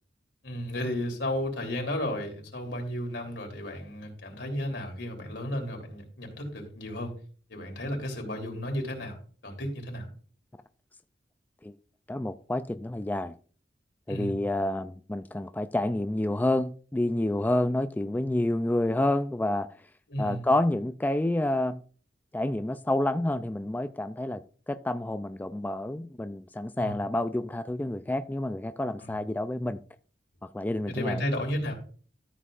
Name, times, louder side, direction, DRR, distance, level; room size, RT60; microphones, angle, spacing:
voice 1, 0.4-7.1 7.5-9.2 9.4-10.1 14.1-14.3 20.1-20.4 26.8-26.9 29.0-29.1 30.9-31.7, left 1 dB, 85° left, 3.3 m, -33 dB
voice 2, 12.1-13.4 14.1-19.7 20.2-21.8 22.3-24.4 24.7-29.8 30.5-31.2, left 1 dB, 10° left, 0.3 m, -29 dB
13.5 x 7.3 x 2.5 m
head